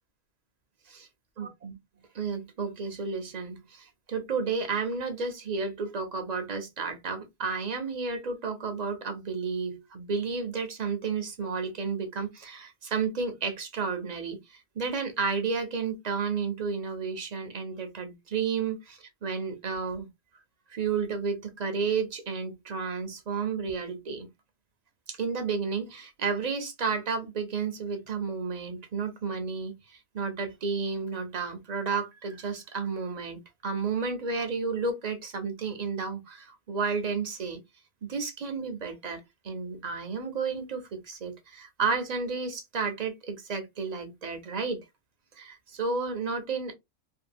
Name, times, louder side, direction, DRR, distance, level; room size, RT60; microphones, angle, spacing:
voice 1, 1.4-1.7 2.1-20.1 20.7-24.3 25.1-37.6 38.1-44.8 45.4-46.7, right 5 dB, 45° right, 0.5 m, -32 dB
2.7 x 2.3 x 2.6 m
omnidirectional pair, 1.4 m